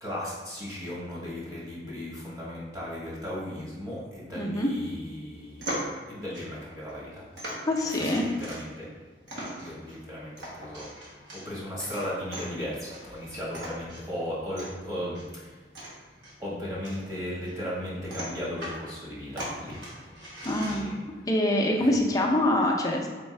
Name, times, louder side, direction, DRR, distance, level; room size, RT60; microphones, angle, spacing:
voice 1, 0.0-5.8 6.1-7.3 7.8-8.9 9.4-15.6 16.4-20.9 21.8-21.9, equal, 20° right, -8 dB, 1.4 m, -36 dB
voice 2, 4.4-4.7 7.6-8.2 20.4-20.9 21.3-23.1, left 1 dB, 20° left, 0 dB, 0.5 m, -25 dB
sound 1, 5.3-21.1, right 1 dB, 85° right, 1.2 m, -41 dB
4.2 x 3.5 x 3.2 m, 1.4 s
head